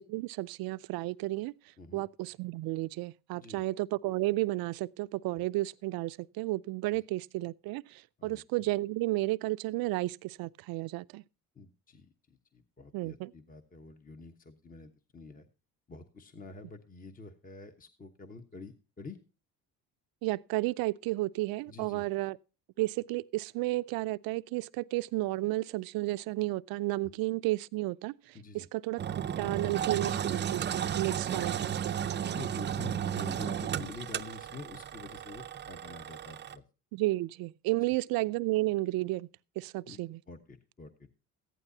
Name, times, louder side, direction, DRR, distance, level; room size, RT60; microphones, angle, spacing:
voice 1, 0.0-1.5 1.9-11.2 12.9-13.3 20.2-22.4 22.8-29.0 29.4-32.4 36.9-39.3 39.6-40.2, right 19 dB, 80° right, 0.5 m, -32 dB
voice 2, 11.6-15.5 15.9-19.2 21.7-22.0 28.3-28.7 30.1-30.4 31.3-31.6 32.2-36.6 39.9-40.9, left 3 dB, 25° left, 1.1 m, -48 dB
Engine, 29.0-36.5, right 9 dB, 30° right, 0.5 m, -34 dB
15.0 x 11.0 x 2.7 m
cardioid pair, 100°, 35 cm